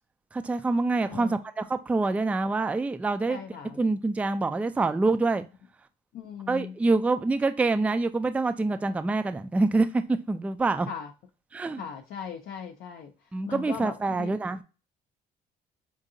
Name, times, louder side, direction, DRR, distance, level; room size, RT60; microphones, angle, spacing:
voice 1, 0.3-3.4 3.8-5.4 6.5-10.9 11.5-11.8 13.3-14.6, right 3 dB, 10° right, 0.3 m, -26 dB
voice 2, 1.0-1.3 3.3-3.8 6.1-6.7 10.9-11.1 11.8-13.1 13.5-14.4, left 7 dB, 70° left, 0.6 m, -38 dB
5.0 x 2.7 x 2.6 m
cardioid pair, 110°, 17 cm